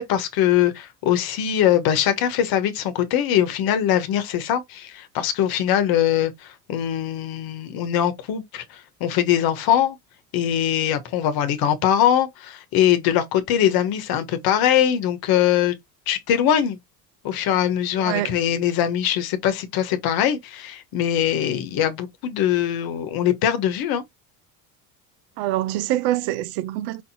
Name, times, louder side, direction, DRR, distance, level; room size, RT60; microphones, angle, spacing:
voice 1, 0.0-10.0 10.3-15.7 16.1-16.8 17.2-24.0, left 10 dB, 60° left, 1.1 m, -22 dB
voice 2, 18.0-18.4 25.4-27.0, right 14 dB, 70° right, 0.7 m, -25 dB
5.1 x 2.8 x 2.6 m
supercardioid pair, 85°, 41 cm